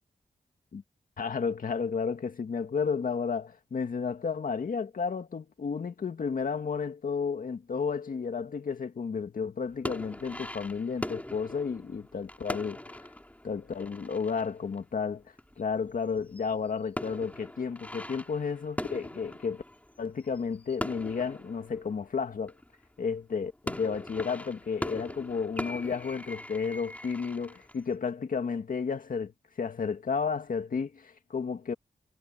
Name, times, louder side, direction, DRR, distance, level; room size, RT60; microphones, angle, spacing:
voice 1, 1.2-13.0 13.4-15.2 15.6-19.6 20.0-22.5 23.0-29.3 29.6-31.7, left 5 dB, 65° left, 2.1 m, -32 dB
sound 1, 9.7-15.9 16.2-22.9 23.4-27.9, left 1 dB, 10° left, 4.5 m, -41 dB
cardioid pair, 65°, 15 cm